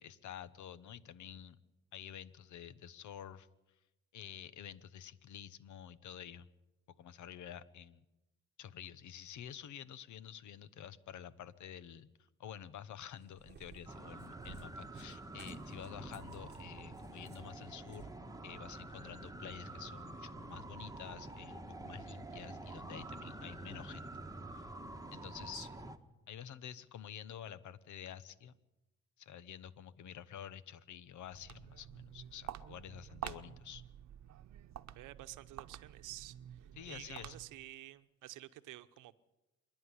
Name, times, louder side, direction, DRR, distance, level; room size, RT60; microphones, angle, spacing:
voice 1, 0.0-1.6 1.9-3.5 4.1-6.5 6.9-8.0 8.6-12.1 12.4-18.1 18.4-24.1 25.1-25.7 26.3-28.5 29.2-33.8 36.8-37.4, left 9 dB, 75° left, 16 dB, 1.1 m, -49 dB
Cat, 13.0-18.2, right 6 dB, 35° right, 1.1 m, -56 dB
sound 1, 13.9-26.0, right 2 dB, 10° right, 1.4 m, -48 dB
Walk footsteps, 31.2-37.7, right 11 dB, 60° right, 0.9 m, -49 dB
voice 2, 34.9-39.2, right 16 dB, 90° right, 12 dB, 1.0 m, -51 dB
26.0 x 11.0 x 9.8 m, 1.0 s
cardioid pair, 90°, 30 cm